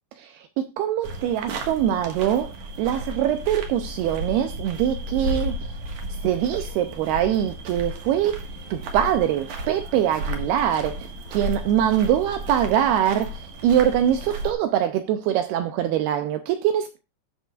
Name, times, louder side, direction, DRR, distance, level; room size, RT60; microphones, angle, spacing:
voice 1, 0.2-5.6 6.2-8.4 8.7-17.0, right 10 dB, 80° right, 2.3 m, -23 dB
sound 1, 1.0-14.5, right 1 dB, 60° right, 2.3 m, -33 dB
18.5 x 6.4 x 2.4 m
omnidirectional pair, 5.1 m